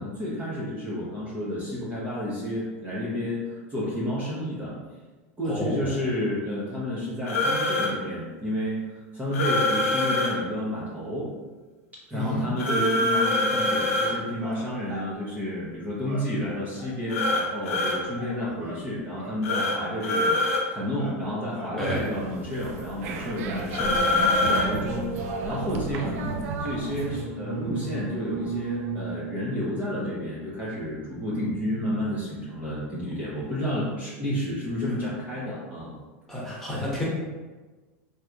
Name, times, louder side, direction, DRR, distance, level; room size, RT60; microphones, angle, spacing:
voice 1, 0.0-4.7 5.4-11.3 12.1-20.4 20.7-35.9, left 1 dB, 20° right, -8 dB, 0.8 m, -31 dB
voice 2, 5.4-5.9 12.1-12.5 21.8-22.0 36.3-37.0, left 1 dB, 5° left, -6 dB, 1.1 m, -30 dB
sound 1, 7.3-7.9 9.3-10.3 12.6-14.1 17.1-18.0 19.4-19.8 20.0-20.6 23.7-24.7, left 2 dB, 85° left, 0.6 m, -24 dB
sound 2, 14.4-15.1 16.0-16.3 16.8-16.9 17.2-17.8 18.2-18.3 18.6-18.9 19.2-19.4 19.7-20.3 21.0-21.2 21.5-21.7 22.7-29.5, right 3 dB, 40° right, 1.4 m, -37 dB
sound 3, 21.9-27.3, right 4 dB, 70° right, 0.4 m, -34 dB
3.3 x 2.8 x 2.4 m, 1.3 s
supercardioid pair, 120°, 8 cm